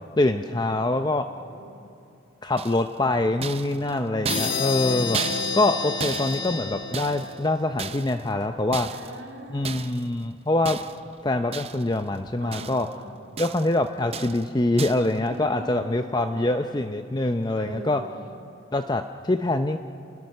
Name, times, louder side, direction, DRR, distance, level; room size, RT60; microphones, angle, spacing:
voice 1, 0.2-1.3 2.4-5.2 5.5-8.9 9.5-10.8 11.2-12.9 13.4-18.0 18.7-19.8, left 2 dB, 20° left, 7 dB, 0.5 m, -24 dB
voice 2, 1.3-1.8 3.6-4.2 8.9-9.8 12.4-13.3 15.1-16.8 17.5-18.3, right 1 dB, 75° right, 1 dB, 3.0 m, -42 dB
sound 1, 2.6-3.0 3.4-7.4 7.8-8.3 8.7-9.2 9.6-10.1 10.7-11.1 11.5-12.0 12.3-13.0 13.4-13.8 14.1-14.5 14.8-15.1, right 6 dB, 30° right, 0.5 m, -34 dB
sound 2, 4.3-7.8, left 4 dB, 75° left, 1.7 m, -29 dB
30.0 x 21.0 x 6.5 m, 2.7 s
head